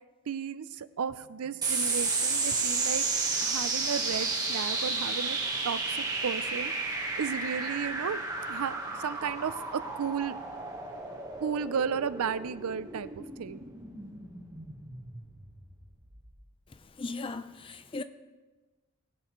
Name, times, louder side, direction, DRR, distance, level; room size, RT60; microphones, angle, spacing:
voice 1, 0.3-3.1 3.4-5.4 5.6-6.0 6.2-6.7 7.2-10.4 11.4-13.6, right 7 dB, 80° right, 0.5 m, -34 dB
sound 1, 1.6-16.4, right 3 dB, 15° right, 1.2 m, -32 dB
voice 2, 16.7-18.0, left 3 dB, 25° left, 0.4 m, -38 dB
18.5 x 8.0 x 3.1 m
head